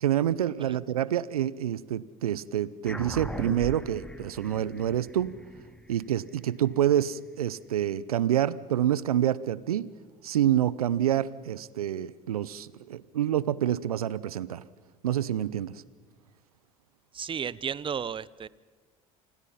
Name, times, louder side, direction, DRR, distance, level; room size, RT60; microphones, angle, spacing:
voice 1, 0.0-5.3 5.9-9.9 10.2-14.6 15.0-15.7, right 11 dB, 90° right, 20 dB, 0.7 m, -27 dB
sound 1, 2.8-7.6, equal, 5° left, 2.2 m, -40 dB
voice 2, 17.1-18.5, right 7 dB, 30° right, 21 dB, 0.7 m, -34 dB
28.0 x 20.5 x 5.7 m, 1.5 s
hypercardioid pair, 70°, 18 cm